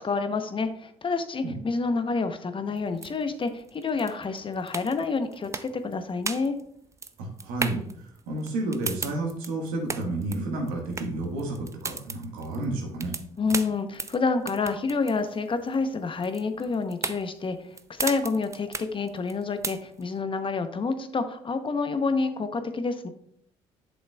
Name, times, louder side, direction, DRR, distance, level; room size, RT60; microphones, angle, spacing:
voice 1, 0.0-6.5 13.4-23.1, left 4 dB, 35° left, 9 dB, 0.8 m, -28 dB
sound 1, 2.7-20.2, right 4 dB, 20° right, 0.5 m, -36 dB
voice 2, 7.2-13.2, right 2 dB, 80° right, 1 dB, 1.5 m, -31 dB
8.0 x 6.3 x 2.3 m, 0.69 s
hypercardioid pair, 60°, 15 cm